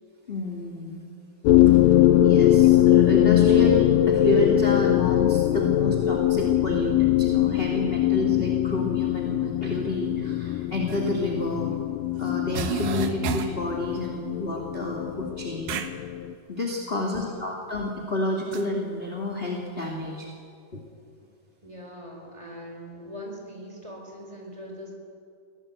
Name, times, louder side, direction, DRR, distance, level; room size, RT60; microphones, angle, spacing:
voice 1, 0.3-1.0 2.2-11.7 12.2-15.8 16.5-20.3 20.7-20.8, left 1 dB, 20° left, -1 dB, 1.9 m, -29 dB
sound 1, 1.5-16.3, left 13 dB, 85° left, 1.5 m, -21 dB
sound 2, 10.9-11.0 12.2-12.3 12.5-13.6 15.6-15.9 18.5-18.6, right 7 dB, 80° right, 2.8 m, -30 dB
voice 2, 16.9-17.4 21.6-24.9, equal, 10° right, 0 dB, 4.5 m, -41 dB
23.5 x 17.0 x 8.2 m, 2.4 s
omnidirectional pair, 3.9 m